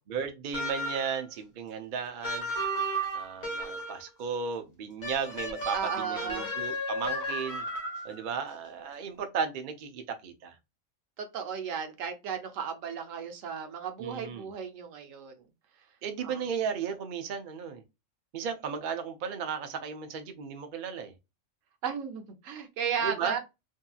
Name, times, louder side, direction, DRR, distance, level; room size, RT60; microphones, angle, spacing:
voice 1, 0.1-2.5 3.1-7.6 8.0-10.5 14.0-14.5 16.0-17.8 18.3-21.1 23.0-23.4, right 6 dB, 60° right, 0.5 m, -35 dB
sound 1, 0.5-1.2 2.2-4.1 5.0-8.2, right 1 dB, 40° left, 1.0 m, -34 dB
voice 2, 5.7-6.5 11.2-15.5 16.2-16.4 21.8-23.4, right 7 dB, 80° right, 1.0 m, -35 dB
2.7 x 2.6 x 2.2 m
omnidirectional pair, 1.3 m